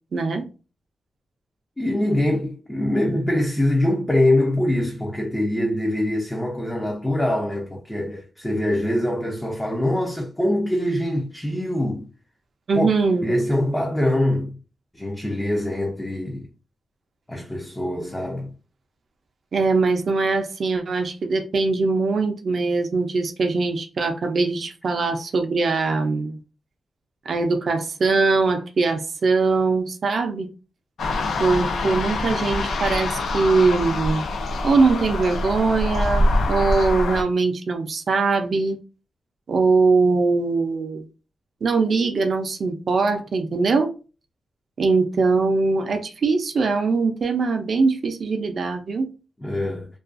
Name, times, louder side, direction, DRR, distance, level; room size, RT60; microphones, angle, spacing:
voice 1, 0.1-0.4 12.7-13.3 19.5-26.4 27.3-30.5 31.4-34.2 34.6-38.8 39.5-41.1 41.6-43.9 44.8-49.1, right 4 dB, 55° right, 0.4 m, -21 dB
voice 2, 1.8-12.1 12.7-12.9 13.2-14.6 14.9-16.5 17.3-18.5 49.4-49.9, left 1 dB, 10° left, 0.4 m, -23 dB
sound 1, 31.0-37.2, left 2 dB, 75° left, 0.4 m, -24 dB
2.3 x 2.2 x 2.4 m
cardioid pair, 105°, 0 cm